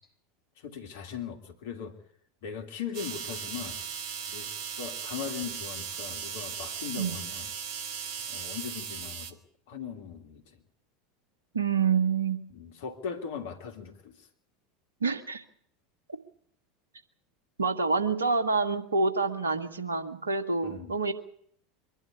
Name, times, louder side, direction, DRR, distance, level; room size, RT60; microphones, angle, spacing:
voice 1, 0.6-2.0 2.4-3.9 4.3-4.5 4.8-7.5 8.3-9.4 9.7-10.6 12.5-14.3 20.6-20.9, left 7 dB, 65° left, 5 dB, 3.2 m, -39 dB
sound 1, 2.9-9.3, right 7 dB, 50° right, 2.2 m, -37 dB
voice 2, 11.5-12.4 15.0-15.4 17.6-21.1, right 4 dB, 80° right, 9 dB, 1.8 m, -27 dB
24.0 x 12.0 x 9.7 m, 0.65 s
figure-of-eight pair, 80°, 0 cm